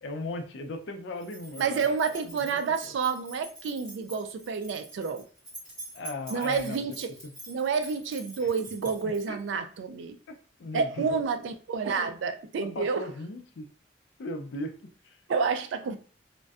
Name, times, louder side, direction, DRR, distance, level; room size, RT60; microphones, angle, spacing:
voice 1, 0.0-1.9 2.2-2.4 2.8-2.9 5.9-6.9 7.2-7.3 8.4-8.5 9.0-9.6 10.3-11.2 11.9-12.1 12.5-13.7 14.2-15.2, left 2 dB, 70° left, 0.4 m, -38 dB
sound 1, 1.2-9.5, right 1 dB, 5° left, 1.3 m, -46 dB
voice 2, 1.6-5.3 6.3-7.1 7.5-10.2 10.7-13.1 15.3-16.0, right 5 dB, 80° right, 0.3 m, -29 dB
2.5 x 2.1 x 2.3 m
head